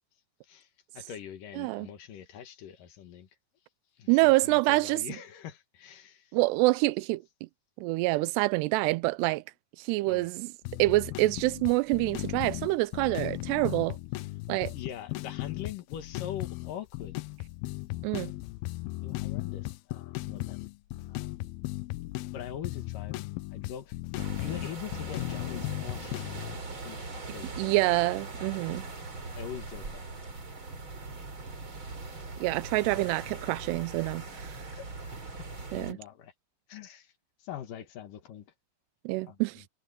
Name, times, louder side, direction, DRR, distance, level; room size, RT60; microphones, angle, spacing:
voice 1, 0.9-3.3 4.0-6.4 10.1-10.3 14.2-14.3 14.7-17.2 19.0-20.7 21.1-21.5 22.3-23.2 23.5-26.1 26.8-27.7 29.3-30.0 34.7-35.1 35.6-36.3 36.7-37.1 37.4-38.5 39.2-39.4, left 10 dB, 60° left, 2.7 m, -43 dB
voice 2, 1.6-1.9 4.1-5.0 6.3-7.2 7.8-9.4 9.8-10.5 10.8-14.0 14.5-14.7 18.0-18.3 27.6-28.8 32.4-34.6 35.7-36.0 39.1-39.6, right 21 dB, 85° right, 2.6 m, -26 dB
sound 1, 10.6-26.6, left 20 dB, 85° left, 2.2 m, -36 dB
sound 2, 24.2-35.9, right 3 dB, 30° right, 4.3 m, -41 dB
omnidirectional pair, 5.1 m